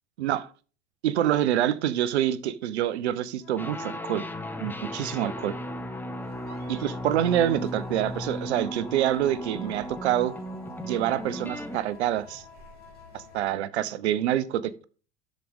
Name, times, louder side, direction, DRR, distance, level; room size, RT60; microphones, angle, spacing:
voice 1, 1.0-4.3 4.6-5.5 6.7-10.3 10.8-12.4 13.1-14.8, right 11 dB, 85° right, 0.8 m, -26 dB
sound 1, 3.3-13.6, left 7 dB, 90° left, 1.9 m, -50 dB
sound 2, 3.6-11.8, equal, 5° left, 1.0 m, -36 dB
sound 3, 6.2-13.5, left 1 dB, 30° right, 5.0 m, -52 dB
12.0 x 5.1 x 3.6 m
hypercardioid pair, 90°, 32 cm